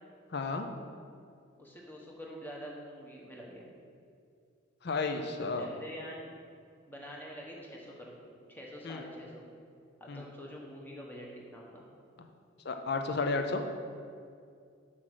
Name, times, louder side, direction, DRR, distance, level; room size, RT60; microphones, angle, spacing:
voice 1, 0.3-0.7 4.8-5.7 8.8-9.0 10.1-10.2 12.7-13.6, left 3 dB, 55° left, 6 dB, 0.6 m, -32 dB
voice 2, 1.6-3.7 5.6-6.3 6.9-8.2 8.5-9.4 10.0-11.8, equal, 10° left, -2 dB, 1.2 m, -46 dB
6.2 x 6.0 x 6.3 m, 2.3 s
head